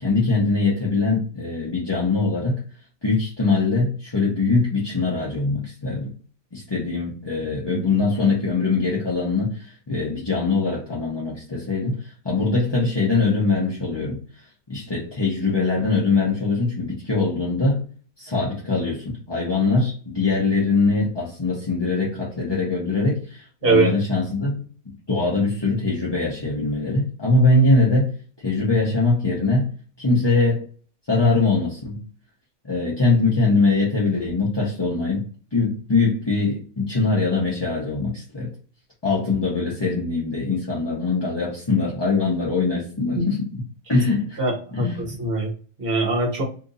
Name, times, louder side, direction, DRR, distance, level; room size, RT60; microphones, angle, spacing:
voice 1, 0.0-2.6 3.0-6.1 6.5-12.0 12.2-14.2 14.7-17.8 18.2-24.5 25.1-28.1 28.4-29.7 30.0-30.6 31.1-32.0 32.6-35.2 35.5-38.5 39.0-43.6 43.9-44.4 44.7-45.0, left 3 dB, 20° left, -6 dB, 0.7 m, -22 dB
voice 2, 44.4-45.5 45.8-46.4, right 3 dB, 45° right, -1 dB, 1.1 m, -22 dB
2.9 x 2.6 x 3.9 m, 0.41 s
omnidirectional pair, 1.5 m